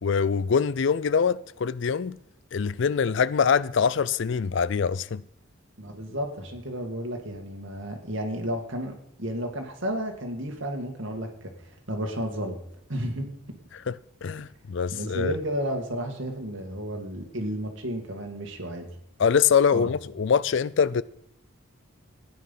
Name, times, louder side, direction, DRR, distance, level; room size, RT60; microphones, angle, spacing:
voice 1, 0.0-2.2 2.5-5.2 13.9-14.0 14.2-15.3 19.2-21.0, left 6 dB, 60° left, 0.4 m, -24 dB
voice 2, 5.8-12.6 12.9-13.3 14.9-18.9 19.7-19.9, equal, 65° right, 2.3 m, -32 dB
16.0 x 9.9 x 5.6 m
head